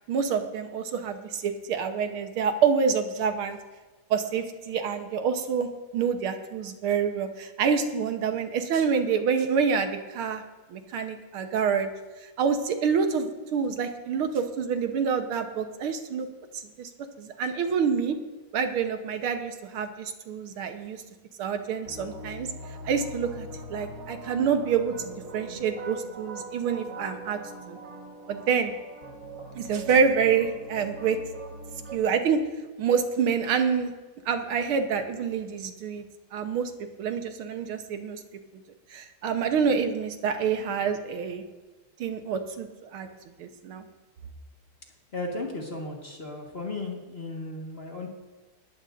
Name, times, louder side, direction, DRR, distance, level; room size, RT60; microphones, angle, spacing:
voice 1, 0.1-3.6 4.1-5.7 5.9-10.4 10.7-11.9 12.4-16.3 16.6-16.9 17.2-18.2 18.5-21.0 21.4-22.5 22.9-24.9 25.3-27.4 27.7-27.8 28.3-28.7 29.6-31.2 31.9-32.4 32.8-33.9 34.3-36.1 36.3-36.7 37.0-38.2 38.9-41.4 42.0-43.1 43.4-43.8, right 6 dB, 75° right, 6 dB, 1.9 m, -27 dB
sound 1, 21.9-32.0, right 2 dB, 40° right, 1.6 m, -41 dB
voice 2, 45.1-48.1, left 2 dB, 30° left, 0 dB, 1.6 m, -35 dB
19.5 x 14.0 x 2.6 m, 1.2 s
omnidirectional pair, 2.4 m